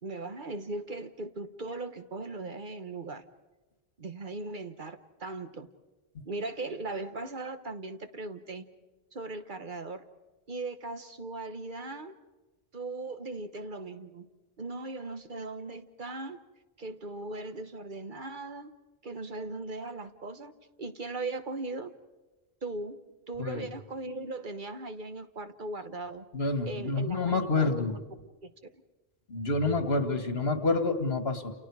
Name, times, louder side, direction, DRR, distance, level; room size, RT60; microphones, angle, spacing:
voice 1, 0.0-3.2 4.0-5.7 6.2-8.6 9.1-10.0 10.5-12.1 12.7-14.3 14.6-16.4 16.8-18.7 19.0-20.5 20.8-21.9 22.6-23.0 23.3-26.2 26.7-28.0 28.4-28.5, right 2 dB, 55° right, 9 dB, 1.3 m, -38 dB
voice 2, 26.3-28.0 29.3-31.5, left 3 dB, 80° left, 8 dB, 2.2 m, -28 dB
29.5 x 29.0 x 4.9 m, 1.2 s
omnidirectional pair, 1.0 m